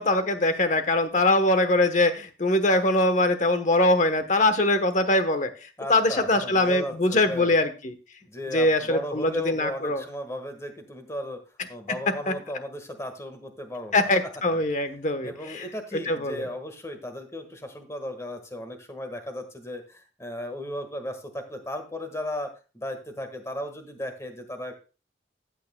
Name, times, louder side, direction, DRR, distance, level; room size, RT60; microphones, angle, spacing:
voice 1, 0.0-5.5 5.9-7.9 8.5-10.0 12.3-12.4 13.9-15.6 16.1-16.5, left 2 dB, 45° left, 9 dB, 1.1 m, -22 dB
voice 2, 5.8-7.6 8.2-11.4 11.7-14.1 14.5-14.6 15.2-24.7, left 1 dB, 15° left, 7 dB, 1.5 m, -36 dB
14.5 x 8.6 x 2.2 m, 0.32 s
head